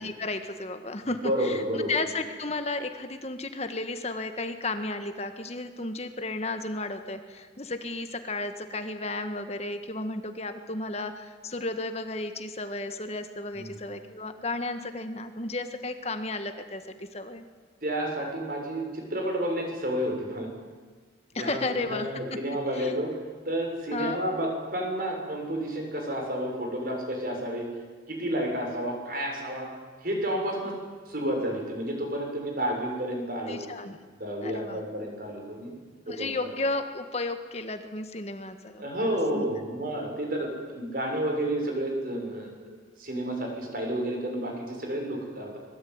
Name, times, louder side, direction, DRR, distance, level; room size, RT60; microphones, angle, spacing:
voice 1, 0.0-17.4 21.3-22.1 22.7-23.0 23.9-24.2 33.5-34.0 34.4-34.8 36.1-39.4, left 2 dB, 35° left, 8 dB, 1.6 m, -33 dB
voice 2, 1.0-1.9 13.5-13.6 17.8-20.5 21.4-23.2 23.5-27.7 28.1-29.7 30.0-30.8 31.1-33.6 34.2-35.7 36.1-36.3 38.8-45.6, right 1 dB, 50° right, 2 dB, 7.0 m, -31 dB
25.5 x 22.0 x 9.6 m, 1.4 s
head